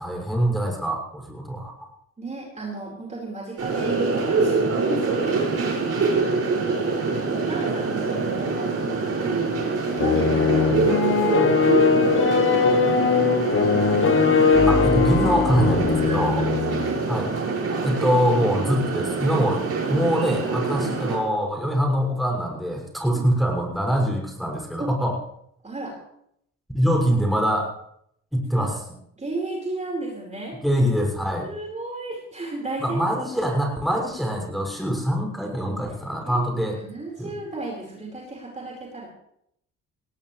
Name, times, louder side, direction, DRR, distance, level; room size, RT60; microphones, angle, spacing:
voice 1, 0.0-1.9 14.7-16.4 17.1-17.3 17.8-19.6 19.9-25.1 26.7-27.7 28.3-28.8 30.6-31.5 32.8-36.8 37.2-37.3, equal, ahead, -1 dB, 6.4 m, -24 dB
voice 2, 2.2-5.5 6.8-7.0 7.3-8.9 9.2-9.5 9.9-14.2 16.0-17.0 20.8-20.9 23.0-23.2 24.8-25.0 25.6-26.0 28.5-28.8 29.2-30.6 31.4-33.1 34.9-35.1 36.1-39.1, right 2 dB, 25° right, -2 dB, 4.9 m, -35 dB
sound 1, 3.6-21.2, right 4 dB, 50° right, 6.3 m, -25 dB
sound 2, 10.0-16.9, left 5 dB, 45° left, 1.6 m, -20 dB
19.5 x 18.0 x 3.4 m, 0.73 s
cardioid pair, 90°, 30 cm